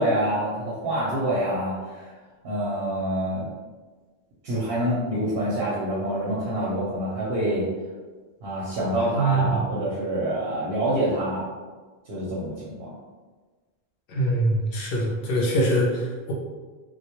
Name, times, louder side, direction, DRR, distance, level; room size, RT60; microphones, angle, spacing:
voice 1, 0.0-2.1 2.4-3.4 4.4-7.7 8.4-11.5 12.1-12.9, right 1 dB, 65° right, -7 dB, 0.8 m, -26 dB
voice 2, 9.1-9.6 14.1-16.3, right 1 dB, 65° left, -3 dB, 0.7 m, -23 dB
2.1 x 2.1 x 2.8 m, 1.3 s
omnidirectional pair, 1.1 m